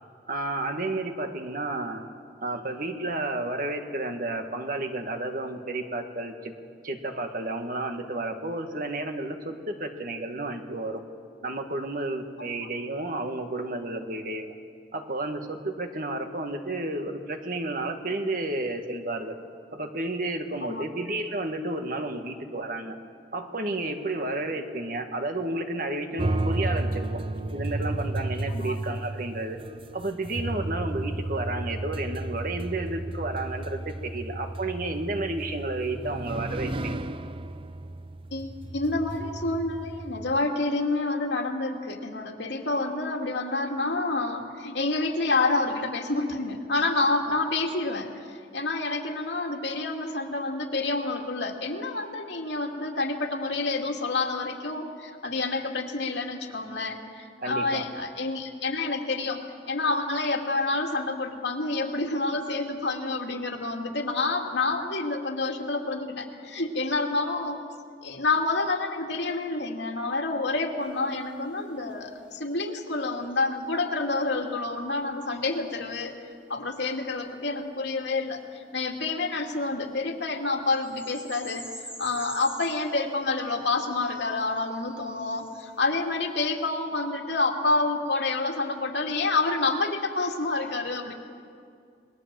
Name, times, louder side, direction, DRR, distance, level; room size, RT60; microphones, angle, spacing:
voice 1, 0.3-2.0 2.4-6.5 6.8-11.0 11.4-14.5 14.9-19.3 19.7-23.0 23.3-27.2 27.5-29.6 29.9-37.0 57.4-57.8, right 2 dB, 50° right, 5 dB, 1.8 m, -31 dB
sound 1, 26.2-40.4, right 2 dB, 30° right, 0.6 m, -33 dB
voice 2, 38.3-59.4 59.7-67.6 68.0-76.1 76.5-91.1, left 3 dB, 75° left, 2 dB, 2.6 m, -28 dB
sound 2, 70.8-72.4 72.8-73.6 77.2-78.9 79.7-79.9 80.3-80.4 80.7-85.8, equal, 5° right, 2.0 m, -47 dB
28.0 x 21.0 x 7.7 m, 2.3 s
head